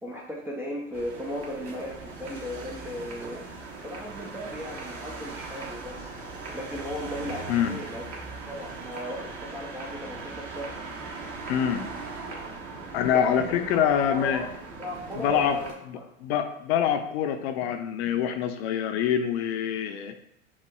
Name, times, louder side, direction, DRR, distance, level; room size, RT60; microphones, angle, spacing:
voice 1, 0.0-3.4 3.8-6.1 6.5-8.1 8.5-10.8 12.9-13.2 13.5-14.5 14.8-16.4, equal, 5° right, -3 dB, 0.4 m, -37 dB
sound 1, 0.9-15.7, right 3 dB, 35° right, 1.2 m, -39 dB
voice 2, 11.5-11.9 12.9-14.4 15.1-15.6 15.9-20.1, left 9 dB, 55° left, 7 dB, 0.6 m, -25 dB
7.2 x 2.4 x 2.3 m, 0.79 s
hypercardioid pair, 100°, 40 cm